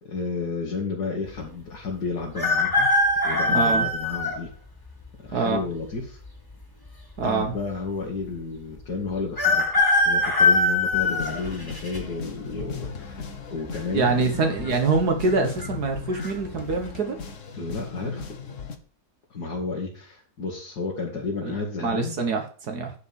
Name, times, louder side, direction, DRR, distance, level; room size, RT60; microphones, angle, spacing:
voice 1, 0.0-2.9 3.2-4.5 5.2-6.2 7.2-9.6 10.0-13.2 13.5-14.5 17.5-18.2 19.3-22.2, left 4 dB, 85° left, -3 dB, 2.7 m, -32 dB
sound 1, 2.4-4.4 5.1-5.2 6.3-6.9 7.2-7.3 7.5-7.6 9.4-12.0 12.5-12.9 14.0-14.4 14.7-14.8 15.3-15.7 16.1-16.3, left 2 dB, 15° left, 2.2 m, -22 dB
voice 2, 3.5-3.9 5.3-5.6 7.2-7.5 13.9-17.2 21.4-21.5 21.8-22.9, right 4 dB, 75° right, 4 dB, 1.9 m, -25 dB
sound 2, 11.0-18.8, left 5 dB, 55° left, 1.5 m, -37 dB
10.5 x 5.0 x 7.0 m, 0.42 s
omnidirectional pair, 1.7 m